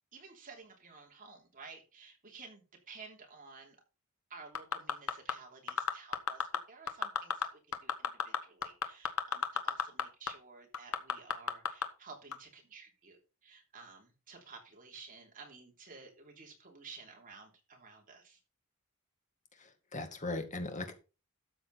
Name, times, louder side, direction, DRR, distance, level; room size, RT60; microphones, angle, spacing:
voice 1, 0.1-3.8 4.3-18.4, right 4 dB, 40° right, 3.1 m, -53 dB
sound 1, 4.5-5.3 5.7-6.6 6.9-7.4 7.7-10.0 10.3-10.4 10.7-11.8 12.3-12.4, left 6 dB, 70° left, 1.1 m, -31 dB
voice 2, 19.6-20.9, left 2 dB, 35° left, 2.0 m, -39 dB
12.5 x 7.5 x 4.1 m
head